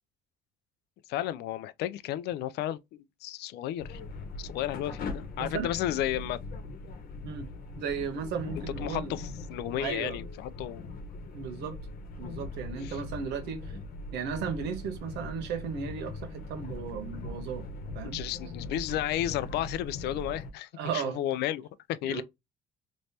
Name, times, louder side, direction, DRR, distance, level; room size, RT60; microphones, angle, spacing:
voice 1, 1.1-4.0 4.4-6.4 8.6-10.9 12.8-13.0 18.0-22.2, left 12 dB, 75° left, 0.4 m, -33 dB
sound 1, 3.8-20.5, left 2 dB, 60° left, 1.0 m, -41 dB
voice 2, 7.8-9.1 9.7-10.2 11.3-11.8 12.2-13.8 14.1-17.7 17.9-18.2 20.8-21.2 22.0-22.2, right 6 dB, 85° right, 0.9 m, -35 dB
3.3 x 3.0 x 2.7 m
cardioid pair, 110°, 17 cm